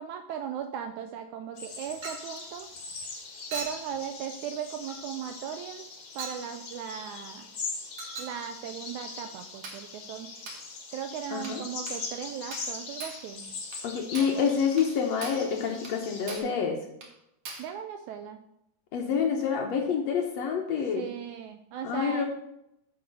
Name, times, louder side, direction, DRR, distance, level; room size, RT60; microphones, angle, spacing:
voice 1, 0.0-2.7 3.5-5.8 6.1-7.5 8.2-10.3 10.9-13.5 14.2-14.5 17.6-18.4 21.0-22.3, right 8 dB, 80° right, 7 dB, 1.8 m, -37 dB
sound 1, 1.6-16.4, left 4 dB, 50° left, 1.7 m, -41 dB
Chink clink, 2.0-2.3 3.5-3.9 4.9-5.0 6.2-6.4 8.0-8.4 9.6-9.9 10.5-10.7 11.4-11.6 11.9-12.0 12.5-12.7 13.0-13.2 13.7-13.8 14.1-14.4 14.8-14.9 15.2-15.5 15.8-16.0 16.3-16.6 17.0-17.1 17.4-17.7, right 4 dB, 50° right, 1.7 m, -40 dB
voice 2, 11.3-11.6 13.8-16.8 18.9-21.0 21.8-22.3, left 6 dB, 65° left, 2 dB, 1.8 m, -27 dB
9.4 x 4.8 x 6.4 m, 0.79 s
omnidirectional pair, 3.9 m